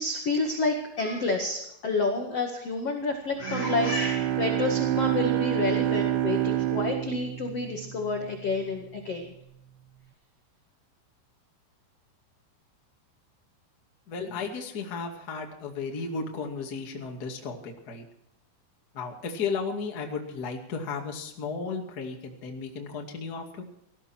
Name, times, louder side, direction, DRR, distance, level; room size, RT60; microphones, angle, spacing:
voice 1, 0.0-9.3, left 3 dB, 60° left, 2 dB, 1.6 m, -29 dB
Bowed string instrument, 3.4-8.5, right 13 dB, 70° right, 3.1 m, -28 dB
voice 2, 14.1-18.0 18.9-23.6, left 4 dB, 40° left, 2 dB, 1.5 m, -34 dB
18.5 x 15.0 x 4.5 m, 0.78 s
omnidirectional pair, 5.8 m